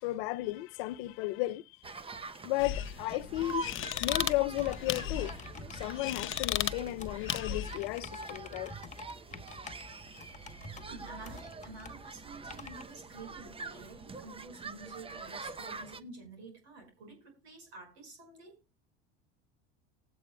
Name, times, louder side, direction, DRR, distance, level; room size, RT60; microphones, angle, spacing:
voice 1, 0.0-1.8 2.4-3.7 4.0-5.3 5.7-8.7 9.8-10.0, left 17 dB, 75° left, 0.5 m, -34 dB
sound 1, 1.8-16.0, right 4 dB, 20° right, 0.7 m, -45 dB
sound 2, 2.6-7.8, left 11 dB, 40° left, 0.7 m, -36 dB
sound 3, 4.5-12.8, left 3 dB, 25° left, 1.4 m, -49 dB
voice 2, 10.8-18.6, right 3 dB, 85° right, 5.2 m, -50 dB
19.5 x 8.4 x 2.2 m
hypercardioid pair, 85°, 31 cm